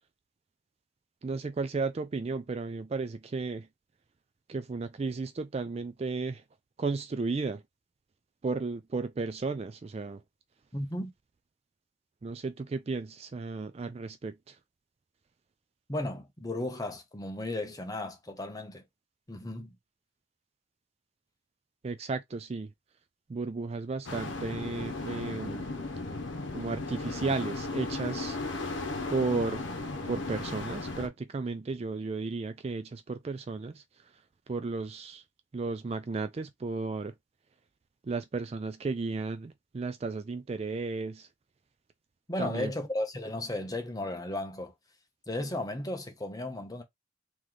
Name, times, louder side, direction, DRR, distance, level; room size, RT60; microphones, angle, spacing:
voice 1, 1.2-3.7 4.5-6.4 6.8-7.6 8.4-10.2 12.2-14.6 21.8-22.7 23.3-25.7 26.5-28.7 29.1-29.6 30.1-34.1 34.5-35.2 35.5-37.1 38.0-41.3 42.4-42.7, right 4 dB, 30° right, 0.3 m, -34 dB
voice 2, 10.7-11.1 15.9-18.8 19.3-19.7 42.3-44.7 45.3-46.8, left 1 dB, 20° left, 0.8 m, -35 dB
sound 1, 24.0-31.1, left 3 dB, 70° left, 0.9 m, -36 dB
3.2 x 3.0 x 3.7 m
head